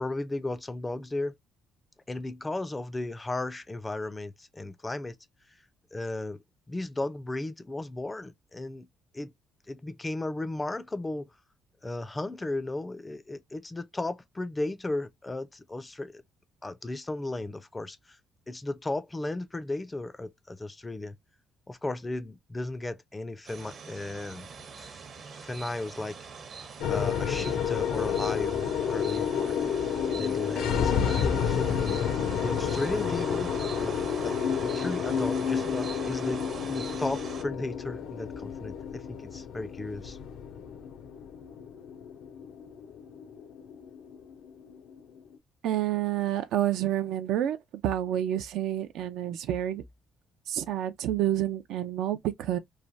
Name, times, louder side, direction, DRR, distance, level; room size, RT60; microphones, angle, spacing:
voice 1, 0.0-1.3 2.1-5.2 5.9-6.4 6.7-8.9 9.1-9.3 9.7-11.3 11.8-16.2 16.6-18.2 18.5-21.2 21.7-24.5 24.8-25.0 25.3-26.2 26.9-29.6 30.1-32.0 32.3-40.2, left 2 dB, 15° left, 0.4 m, -35 dB
sound 1, 23.5-37.4, right 5 dB, 50° right, 0.8 m, -42 dB
sound 2, 26.8-45.2, left 7 dB, 80° left, 0.5 m, -30 dB
voice 2, 45.6-47.6 47.8-49.8 50.5-52.6, right 12 dB, 75° right, 0.4 m, -28 dB
3.1 x 2.2 x 2.5 m
cardioid pair, 95°, 0 cm